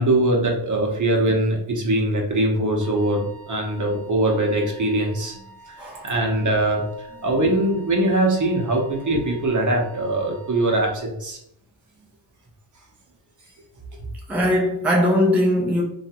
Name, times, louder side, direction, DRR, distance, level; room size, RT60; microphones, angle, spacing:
voice 1, 0.0-5.3 5.7-6.8 7.2-11.4, right 1 dB, 40° right, 0.8 m, -22 dB
Wind instrument woodwind instrument, 2.8-11.0, right 3 dB, 35° left, 1.0 m, -47 dB
voice 2, 5.8-6.1 14.3-15.8, equal, 5° right, 0.4 m, -20 dB
3.0 x 2.4 x 2.8 m
cardioid pair, 85°, 49 cm